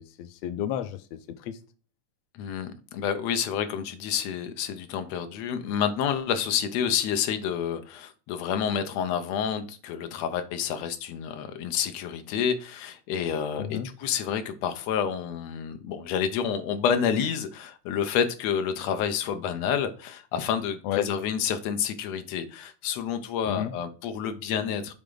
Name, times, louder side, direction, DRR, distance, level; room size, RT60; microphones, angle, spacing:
voice 1, 0.0-1.6 13.6-13.9 20.8-21.1 23.5-23.7, left 10 dB, 85° left, 1.4 m, -32 dB
voice 2, 2.3-24.9, left 8 dB, 70° left, 1.8 m, -29 dB
8.5 x 3.6 x 3.8 m
omnidirectional pair, 3.5 m